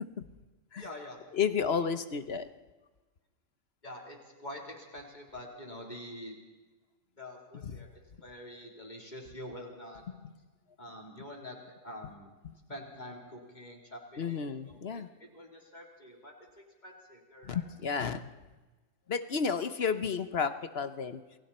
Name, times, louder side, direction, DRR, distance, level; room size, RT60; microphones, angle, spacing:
voice 1, 0.8-1.2 3.8-6.4 7.2-7.9 8.2-10.0 10.8-11.6 11.8-12.3 12.7-15.0 15.3-16.3 16.8-17.7, left 1 dB, 35° left, 0 dB, 3.9 m, -46 dB
voice 2, 1.3-2.5 7.5-7.8 14.2-15.1 17.5-18.3 19.1-21.2, left 6 dB, 55° left, 11 dB, 1.1 m, -32 dB
28.5 x 22.0 x 4.4 m, 1.2 s
omnidirectional pair, 1.4 m